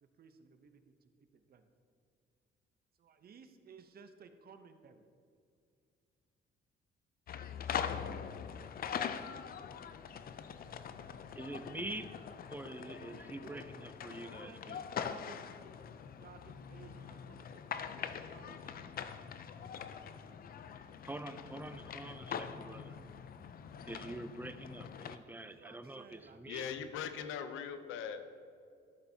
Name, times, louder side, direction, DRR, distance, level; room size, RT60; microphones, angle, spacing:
voice 1, 0.0-1.7 3.0-5.1 13.0-13.6 14.2-15.5 16.2-17.7 17.9-19.0 25.3-26.4, right 5 dB, 50° right, 8 dB, 0.7 m, -57 dB
sound 1, 7.3-25.2, left 7 dB, 50° left, 0.5 m, -43 dB
voice 2, 11.4-12.2 12.5-14.8 21.0-23.0 23.8-26.7, right 2 dB, 10° right, 11 dB, 0.4 m, -45 dB
voice 3, 26.5-28.2, left 7 dB, 90° left, 9 dB, 0.6 m, -40 dB
12.5 x 7.0 x 2.8 m, 2.3 s
cardioid pair, 90°, 20 cm